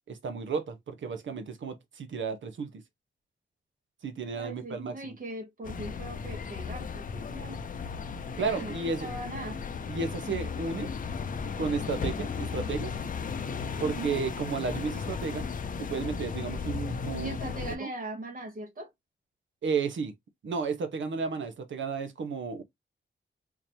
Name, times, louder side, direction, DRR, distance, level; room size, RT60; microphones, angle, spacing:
voice 1, 0.1-2.7 4.0-5.2 8.4-9.1 9.9-10.9 11.6-12.9 13.8-15.5 15.8-17.4 17.8-17.9 19.6-20.1 20.4-22.6, right 5 dB, 85° right, 0.8 m, -33 dB
voice 2, 4.3-7.6 8.6-8.7 9.0-9.6 13.8-14.2 17.2-18.9, right 1 dB, 50° right, 0.9 m, -40 dB
sound 1, 5.6-17.8, left 5 dB, 45° left, 0.4 m, -35 dB
3.8 x 3.0 x 2.7 m
wide cardioid pair, 155°, 19 cm